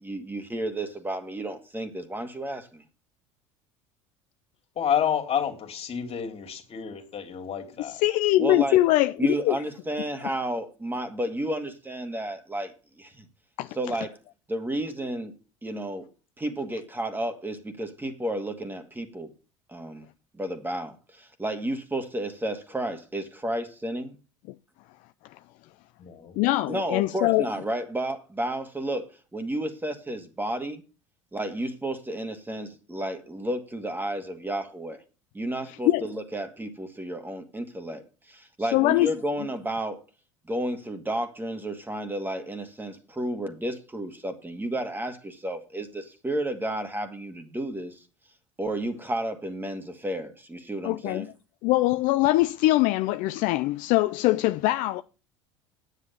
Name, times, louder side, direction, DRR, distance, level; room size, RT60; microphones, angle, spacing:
voice 1, 0.0-2.8 8.4-8.8 9.2-13.3 13.8-14.2 14.5-15.3 15.6-16.1 16.4-19.3 19.7-20.1 20.3-24.2 26.7-30.8 31.3-35.0 35.3-40.0 40.5-48.0 48.6-51.3, right 1 dB, 15° right, 2.0 m, -32 dB
voice 2, 4.8-8.0 26.0-26.4, left 8 dB, 40° left, 2.7 m, -29 dB
voice 3, 7.9-9.6 13.6-13.7 26.4-27.5 35.9-36.0 38.7-39.1 50.8-51.3 51.6-55.0, left 17 dB, 60° left, 0.5 m, -22 dB
9.4 x 8.2 x 6.8 m
hypercardioid pair, 70°, 15 cm